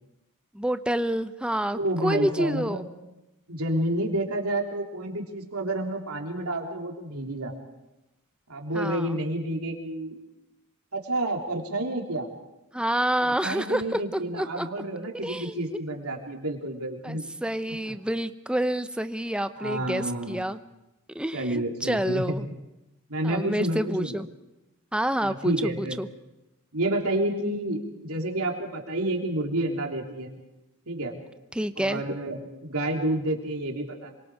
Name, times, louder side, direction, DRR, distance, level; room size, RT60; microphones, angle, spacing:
voice 1, 0.5-2.8 8.7-9.2 12.7-14.7 15.2-15.8 17.0-20.6 21.1-22.4 23.2-24.3 24.9-25.5 25.8-26.1 31.5-32.0, right 1 dB, 5° right, 10 dB, 0.7 m, -28 dB
voice 2, 1.7-2.9 3.5-7.5 8.5-10.2 10.9-12.3 13.2-17.3 19.6-20.5 21.3-22.5 23.1-24.1 25.2-26.0 26.7-30.3 30.9-31.2 31.8-34.1, right 1 dB, 85° right, 2 dB, 3.4 m, -29 dB
26.5 x 23.5 x 4.9 m, 0.96 s
head